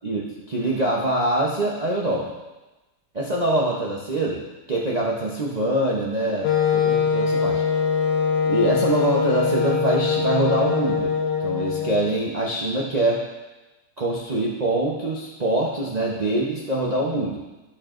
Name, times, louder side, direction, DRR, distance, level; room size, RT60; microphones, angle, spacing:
voice 1, 0.0-2.3 3.1-4.4 4.7-7.6 8.4-11.1 11.4-13.2 14.0-17.4, right 1 dB, 85° right, -4 dB, 0.3 m, -24 dB
Wind instrument woodwind instrument, 6.4-12.1, left 6 dB, 85° left, 1.5 m, -22 dB
13.5 x 4.5 x 2.5 m, 1.1 s
omnidirectional pair, 2.0 m